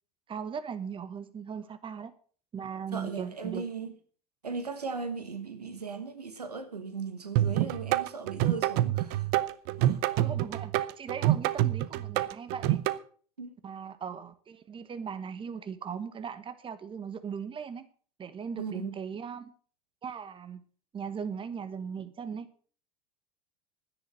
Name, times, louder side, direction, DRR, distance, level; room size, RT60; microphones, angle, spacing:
voice 1, 0.3-2.1 2.5-3.6 10.2-12.8 13.6-17.9 18.2-19.5 20.0-20.6 20.9-22.5, right 7 dB, 25° right, 1.3 m, -38 dB
voice 2, 2.9-3.9 4.4-9.3 9.8-10.0 13.4-13.5 18.6-18.9, right 5 dB, 90° right, 1.5 m, -37 dB
sound 1, 7.4-13.0, right 14 dB, 55° right, 0.8 m, -27 dB
11.5 x 10.0 x 6.4 m
figure-of-eight pair, 75°, 19 cm